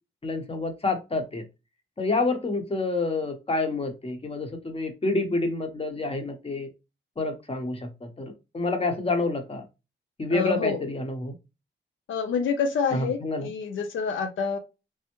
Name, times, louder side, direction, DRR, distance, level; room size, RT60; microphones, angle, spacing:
voice 1, 0.2-1.4 2.0-6.7 7.2-9.6 10.2-11.3 12.9-13.5, left 3 dB, 30° left, 0.9 m, -28 dB
voice 2, 10.3-10.8 12.1-14.6, left 5 dB, 85° left, 0.5 m, -27 dB
3.3 x 2.1 x 2.9 m
cardioid pair, 70°, 20 cm